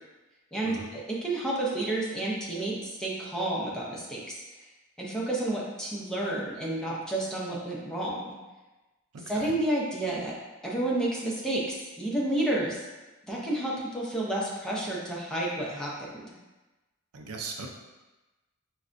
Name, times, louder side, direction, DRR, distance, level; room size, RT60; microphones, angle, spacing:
voice 1, 0.5-4.4 5.0-8.4 9.3-10.4 10.6-12.8 13.3-16.3, right 1 dB, 5° left, -5 dB, 0.5 m, -30 dB
voice 2, 9.1-9.5 17.1-17.7, right 4 dB, 80° right, 2 dB, 0.4 m, -39 dB
4.7 x 2.1 x 2.5 m, 1.1 s
head